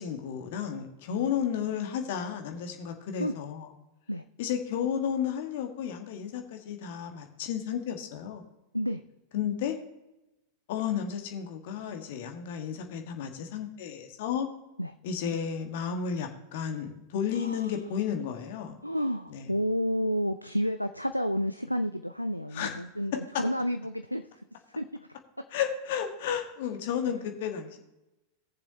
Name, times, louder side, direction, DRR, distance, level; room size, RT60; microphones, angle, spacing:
voice 1, 0.0-3.7 4.4-8.4 9.3-9.7 10.7-14.5 15.0-18.8 19.3-19.5 22.5-22.7 25.5-27.8, left 8 dB, 50° left, 5 dB, 1.4 m, -32 dB
voice 2, 17.3-17.7 18.8-25.2 27.1-27.2, equal, 90° left, 9 dB, 0.4 m, -31 dB
18.5 x 7.1 x 2.7 m, 0.95 s
figure-of-eight pair, 90°, 0 cm